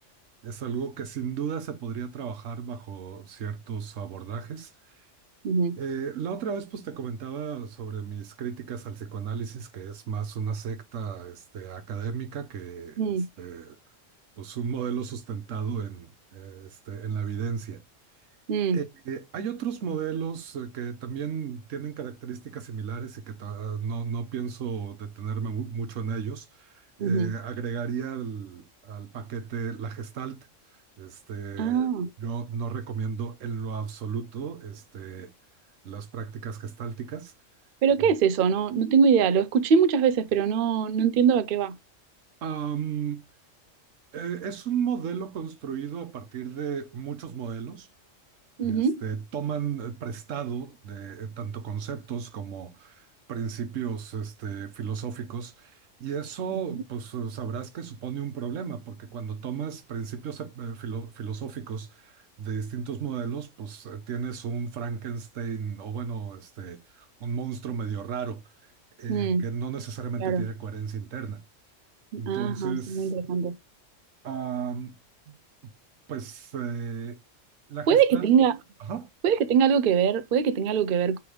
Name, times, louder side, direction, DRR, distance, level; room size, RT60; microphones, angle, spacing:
voice 1, 0.4-4.7 5.8-13.8 14.4-17.8 18.7-30.5 31.0-31.8 32.2-35.3 35.8-37.3 42.4-43.3 44.1-47.9 48.6-68.4 69.0-71.4 72.2-73.1 74.2-74.9 75.3-75.4 76.1-77.2 77.7-78.3 78.9-79.1, right 7 dB, 80° right, 1.2 m, -34 dB
voice 2, 5.4-5.8 13.0-13.3 18.5-18.8 27.0-27.3 31.6-32.1 37.8-41.7 48.6-49.0 56.5-56.6 69.1-69.4 70.2-70.5 72.1-73.5 77.9-78.6 79.2-81.2, right 7 dB, 60° right, 0.6 m, -23 dB
3.5 x 3.2 x 4.8 m
omnidirectional pair, 1.3 m